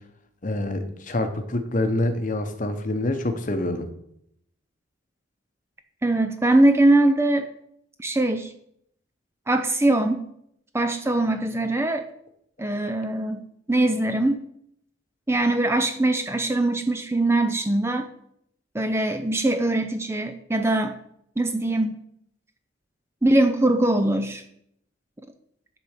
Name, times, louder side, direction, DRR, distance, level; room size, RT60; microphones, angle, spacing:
voice 1, 0.4-3.9, left 1 dB, 40° left, 8 dB, 0.9 m, -26 dB
voice 2, 6.0-7.5 8.0-8.5 9.5-10.2 10.7-12.1 12.6-13.4 13.7-14.4 15.3-18.1 18.7-20.9 21.4-22.0 23.2-24.4, right 2 dB, 10° right, 7 dB, 0.5 m, -22 dB
10.5 x 4.1 x 6.6 m, 0.74 s
head